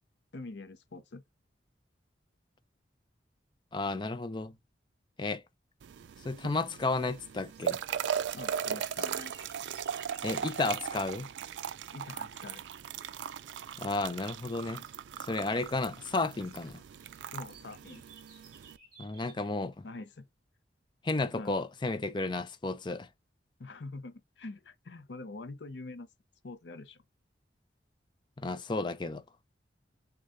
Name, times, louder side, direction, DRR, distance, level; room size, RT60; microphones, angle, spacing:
voice 1, 0.3-1.2 8.3-9.3 11.9-12.6 17.3-18.0 19.8-20.3 21.3-21.6 23.6-26.1 26.4-27.0, left 2 dB, 80° left, 0.7 m, -44 dB
voice 2, 3.7-4.5 5.2-5.4 6.2-7.8 10.2-11.3 13.8-14.8 15.2-16.8 19.0-19.9 21.0-23.1 28.4-29.2, left 3 dB, 25° left, 0.4 m, -32 dB
sound 1, 5.8-18.8, right 8 dB, 80° right, 0.4 m, -38 dB
sound 2, 6.2-11.0 13.2-13.6 14.0-19.6, right 5 dB, 55° right, 2.4 m, -60 dB
6.4 x 2.3 x 2.6 m
head